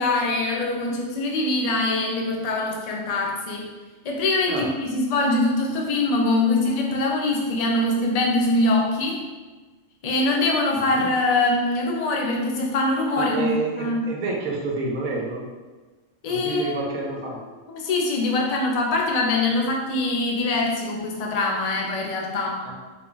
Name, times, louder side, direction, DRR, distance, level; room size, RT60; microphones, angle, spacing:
voice 1, 0.0-3.7 4.0-9.2 10.0-13.5 13.8-14.0 16.2-16.8 17.7-22.6, left 2 dB, 50° left, 0 dB, 0.4 m, -23 dB
voice 2, 13.2-15.5 16.2-17.4 22.6-22.7, right 3 dB, 80° right, -1 dB, 1.2 m, -29 dB
4.4 x 2.3 x 3.8 m, 1.3 s
omnidirectional pair, 1.4 m